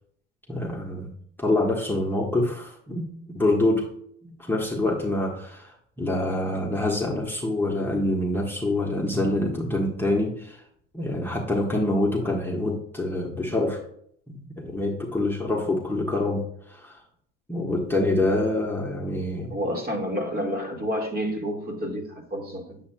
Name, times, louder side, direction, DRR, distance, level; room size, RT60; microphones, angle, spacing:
voice 1, 0.5-1.1 1.4-3.9 4.2-10.6 10.9-13.8 14.3-17.0 17.5-19.6, left 1 dB, 5° left, 1.4 m, -26 dB
voice 2, 19.5-22.8, equal, 25° right, 2.0 m, -29 dB
8.4 x 7.6 x 2.3 m
hypercardioid pair, 85°, 36 cm